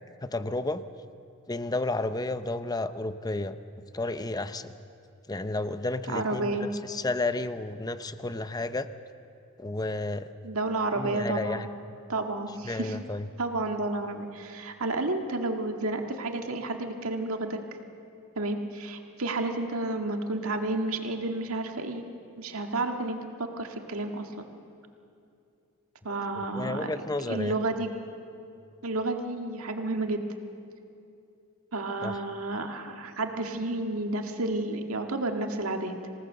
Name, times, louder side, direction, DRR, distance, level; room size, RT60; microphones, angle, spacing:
voice 1, 0.2-0.8 1.5-3.6 3.9-4.7 5.3-8.9 9.6-10.3 10.9-11.7 12.6-13.3 26.1-27.6 32.0-32.2, left 2 dB, 20° left, 11 dB, 0.7 m, -32 dB
voice 2, 6.1-6.7 10.4-11.7 12.1-13.0 13.4-17.6 18.4-22.0 22.4-24.5 26.0-26.9 27.3-27.9 28.8-30.2 31.7-36.0, right 2 dB, 85° right, 4 dB, 1.8 m, -31 dB
26.5 x 18.0 x 6.6 m, 2.7 s
head